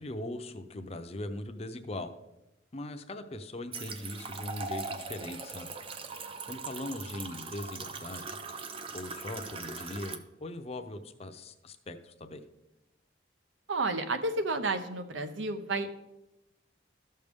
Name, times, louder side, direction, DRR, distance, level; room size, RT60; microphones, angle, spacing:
voice 1, 0.0-2.1 2.7-5.7 6.5-8.3 8.9-12.4, left 1 dB, 35° left, 8 dB, 0.6 m, -40 dB
sound 1, 3.7-10.2, right 4 dB, 30° right, 0.5 m, -40 dB
voice 2, 13.7-15.9, right 2 dB, 90° right, 8 dB, 0.8 m, -31 dB
13.0 x 6.6 x 3.5 m, 0.93 s
head